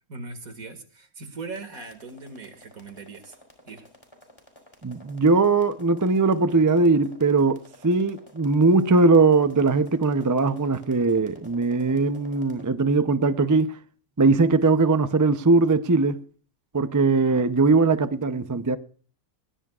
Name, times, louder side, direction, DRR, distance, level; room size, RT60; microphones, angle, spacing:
voice 1, 0.1-3.4 3.7-3.8, right 3 dB, 65° right, 2.5 m, -39 dB
sound 1, 1.4-12.7, equal, 20° left, 3.8 m, -52 dB
voice 2, 4.8-13.8 14.2-16.2 16.7-18.8, right 3 dB, 30° right, 0.3 m, -20 dB
20.5 x 19.0 x 2.4 m
omnidirectional pair, 1.6 m